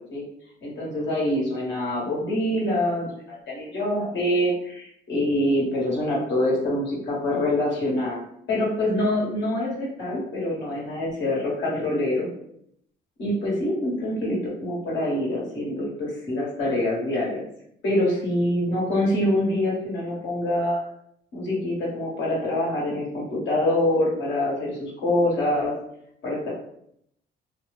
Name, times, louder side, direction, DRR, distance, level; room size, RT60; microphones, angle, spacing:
voice 1, 0.6-3.1 3.5-8.2 8.5-12.3 13.2-17.5 17.8-20.8 21.3-25.7 26.2-26.5, left 1 dB, 65° left, -5 dB, 1.3 m, -25 dB
2.7 x 2.1 x 3.2 m, 0.72 s
cardioid pair, 90°, 20 cm